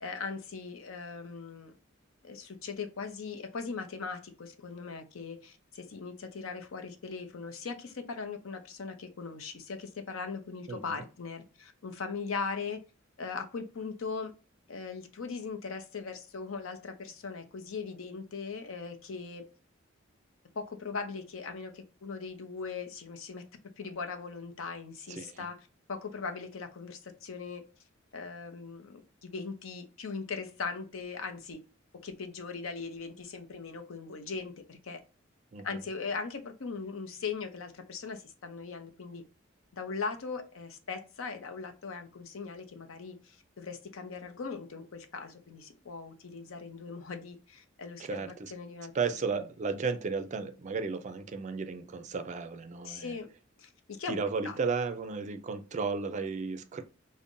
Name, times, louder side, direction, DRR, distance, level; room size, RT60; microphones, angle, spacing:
voice 1, 0.0-1.7 2.2-12.8 13.2-14.3 14.7-19.4 20.6-23.5 23.8-25.6 25.9-27.6 28.1-31.6 32.0-35.0 35.6-39.2 39.7-48.9 52.8-53.3 53.6-53.7 54.0-54.2 54.4-54.6, left 4 dB, 85° left, 0.6 m, -39 dB
voice 2, 10.7-11.0 25.1-25.5 35.5-35.8 48.0-48.5 48.9-53.2 54.1-56.8, right 5 dB, 35° right, 0.4 m, -34 dB
5.2 x 2.1 x 2.5 m
head